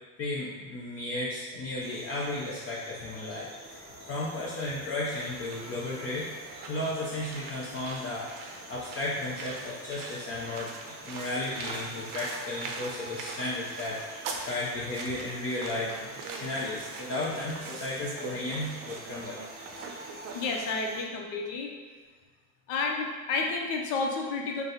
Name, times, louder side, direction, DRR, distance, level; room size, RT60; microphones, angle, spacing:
voice 1, 0.2-6.3 6.7-19.4, left 2 dB, 35° left, -7 dB, 0.6 m, -34 dB
sound 1, 1.8-21.0, right 1 dB, 20° right, 0.9 m, -48 dB
sound 2, 5.1-20.7, right 4 dB, 50° right, 0.6 m, -42 dB
voice 2, 20.3-21.8 22.7-24.6, left 3 dB, 70° left, 1 dB, 0.8 m, -31 dB
3.3 x 2.2 x 4.0 m, 1.5 s
supercardioid pair, 110°, 43 cm